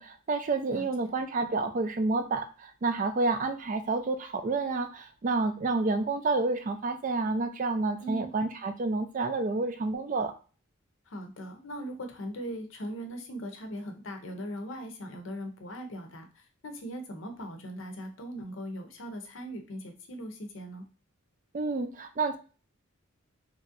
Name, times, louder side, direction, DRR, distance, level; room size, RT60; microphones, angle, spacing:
voice 1, 0.0-10.3 21.5-22.4, right 3 dB, 40° right, 7 dB, 0.3 m, -29 dB
voice 2, 0.7-1.1 8.0-8.3 11.1-20.9, equal, 65° left, 5 dB, 0.6 m, -40 dB
3.0 x 2.6 x 2.5 m, 0.35 s
head